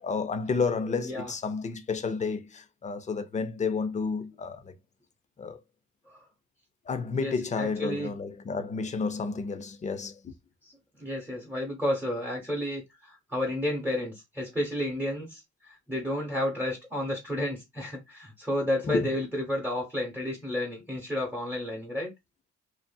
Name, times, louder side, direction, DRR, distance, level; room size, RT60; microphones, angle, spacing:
voice 1, 0.0-4.7 5.4-5.6 6.9-10.3 18.8-19.1, left 4 dB, 25° left, 0.5 m, -31 dB
voice 2, 7.1-8.1 10.6-10.7 11.0-22.1, left 1 dB, 5° right, 1.0 m, -31 dB
2.7 x 2.4 x 2.2 m
cardioid pair, 90°, 30 cm